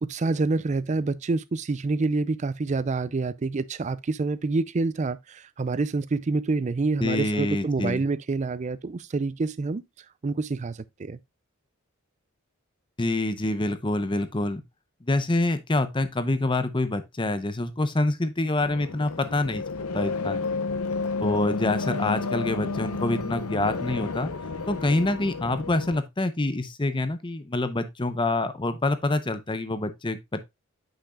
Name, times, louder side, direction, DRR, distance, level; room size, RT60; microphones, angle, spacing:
voice 1, 0.0-9.8 10.2-11.2, right 3 dB, 30° right, 0.4 m, -27 dB
voice 2, 7.0-8.0 13.0-14.6 15.0-20.4 21.2-24.3 24.7-30.4, left 2 dB, 20° left, 0.7 m, -26 dB
sound 1, 18.6-26.0, left 4 dB, 80° left, 0.8 m, -31 dB
8.5 x 5.9 x 2.3 m
head